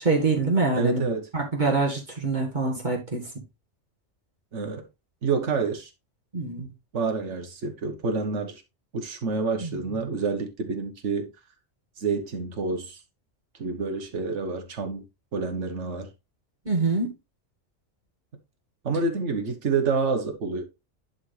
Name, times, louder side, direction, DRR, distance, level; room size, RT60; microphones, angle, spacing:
voice 1, 0.0-1.0 1.3-3.3 6.3-6.7 9.6-9.7 16.7-17.1, right 3 dB, 35° right, 2.1 m, -25 dB
voice 2, 0.7-1.3 4.5-4.8 5.2-5.9 6.9-8.6 8.9-11.3 12.0-13.0 13.6-15.0 15.3-16.1 18.8-20.6, right 4 dB, 65° right, 1.7 m, -28 dB
10.5 x 4.3 x 3.3 m
omnidirectional pair, 1.3 m